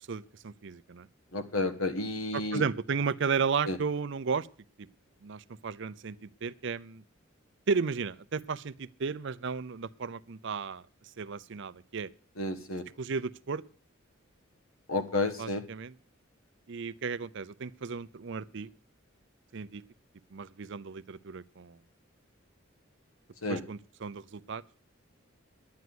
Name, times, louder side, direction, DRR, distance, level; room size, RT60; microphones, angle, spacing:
voice 1, 0.1-1.1 2.3-4.5 4.8-4.9 5.2-6.2 6.4-7.0 7.7-10.8 11.2-12.1 13.0-13.6 15.4-15.9 16.7-18.7 19.5-19.8 20.3-21.8 23.5-24.6, right 5 dB, 60° right, 17 dB, 0.6 m, -34 dB
voice 2, 1.3-2.6 3.6-3.8 12.4-12.9 14.9-15.6 23.4-23.6, left 2 dB, 85° left, 10 dB, 1.5 m, -31 dB
10.5 x 9.5 x 7.8 m, 0.41 s
head